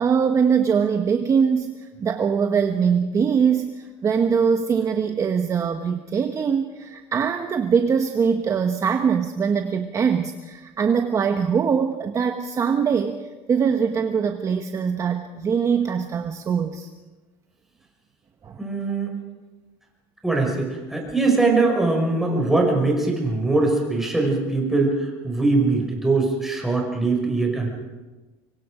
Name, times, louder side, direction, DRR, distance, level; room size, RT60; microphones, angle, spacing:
voice 1, 0.0-16.9 18.4-18.6, right 6 dB, 25° right, 6 dB, 1.2 m, -22 dB
voice 2, 18.6-19.1 20.2-27.7, right 3 dB, 5° right, 0 dB, 5.9 m, -22 dB
25.5 x 23.5 x 5.1 m, 1.2 s
cardioid pair, 140°, 12 cm